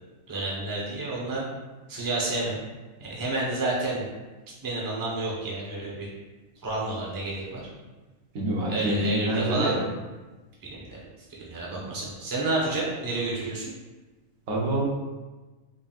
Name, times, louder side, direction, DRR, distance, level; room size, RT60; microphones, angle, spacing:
voice 1, 0.3-1.4 1.9-2.6 3.0-4.1 4.6-6.1 6.6-7.6 8.7-9.8 10.6-11.0 11.3-13.7, right 2 dB, 20° right, -5 dB, 0.6 m, -30 dB
voice 2, 8.3-9.8 14.5-14.9, right 1 dB, 80° right, -2 dB, 1.2 m, -26 dB
3.8 x 3.5 x 2.3 m, 1.2 s
omnidirectional pair, 1.4 m